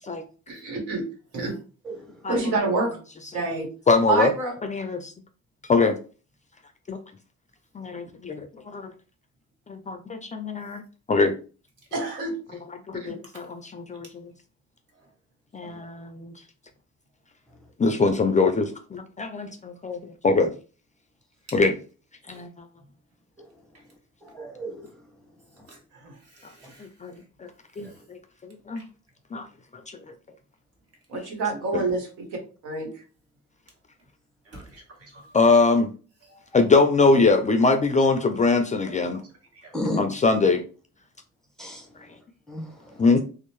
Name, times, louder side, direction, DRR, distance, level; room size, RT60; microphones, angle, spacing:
voice 1, 0.5-1.0 1.3-1.5 2.3-3.0 3.3-3.7 4.1-4.5 11.9-12.6 12.9-13.1 25.9-26.2 31.1-32.3 32.6-33.0, right 3 dB, 90° right, 1 dB, 1.0 m, -27 dB
voice 2, 3.9-4.3 4.6-5.1 5.7-6.0 6.9-7.0 7.8-8.5 8.7-8.9 9.7-10.8 11.1-11.3 12.9-14.3 15.5-16.3 17.8-20.5 21.5-21.7 22.3-22.5 27.0-27.1 27.8-28.2 28.4-28.8 29.3-29.5 31.7-31.8 35.3-35.9 36.5-39.2 39.9-40.6 43.0-43.2, left 3 dB, 25° left, 6 dB, 0.3 m, -22 dB
voice 3, 24.2-24.9 26.6-26.7 27.8-27.9 39.7-40.0 41.6-41.8 42.5-43.0, equal, ahead, 1 dB, 0.8 m, -33 dB
voice 4, 26.3-26.9 28.7-28.8 34.5-35.3 36.3-36.4 39.1-39.2 39.6-39.7, right 2 dB, 50° right, 0 dB, 1.2 m, -48 dB
2.6 x 2.0 x 3.0 m, 0.36 s
cardioid pair, 90°, 30 cm